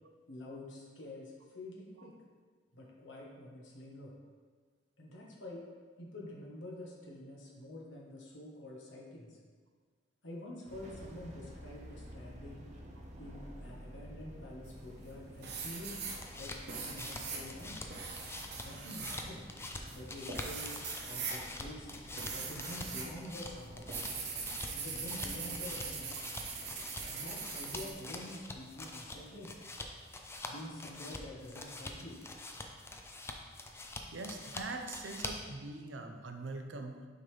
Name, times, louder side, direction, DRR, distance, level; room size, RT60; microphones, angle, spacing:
voice 1, 0.3-2.2 2.7-4.1 5.0-5.6 6.0-9.4 10.2-12.7 13.2-16.1 16.3-17.8 18.6-19.5 19.9-20.7 21.1-21.9 22.3-23.9 24.7-26.2 27.1-29.5 30.5-32.2, left 1 dB, 90° left, -2 dB, 1.4 m, -47 dB
sound 1, 10.7-25.7, equal, 40° right, 0.8 m, -52 dB
sound 2, 14.7-15.1 15.4-23.1 23.4-27.9, right 4 dB, 60° right, 1.0 m, -41 dB
sound 3, 16.0-35.5, left 2 dB, 15° left, 0.5 m, -46 dB
voice 2, 34.1-37.0, right 3 dB, 90° right, 5 dB, 0.6 m, -43 dB
6.3 x 5.3 x 3.4 m, 1.5 s
head